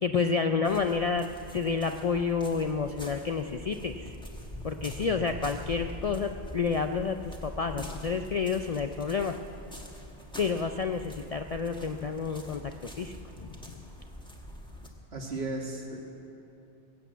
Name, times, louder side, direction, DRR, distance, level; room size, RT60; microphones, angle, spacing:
voice 1, 0.0-1.3 1.5-4.2 4.6-9.4 10.4-12.6 13.0-13.7, left 5 dB, 50° left, 6 dB, 0.4 m, -29 dB
sound 1, 0.6-14.9, equal, 5° left, 1.5 m, -44 dB
voice 2, 15.1-16.0, right 2 dB, 70° right, 0 dB, 2.2 m, -35 dB
20.5 x 8.5 x 8.1 m, 2.9 s
omnidirectional pair, 1.1 m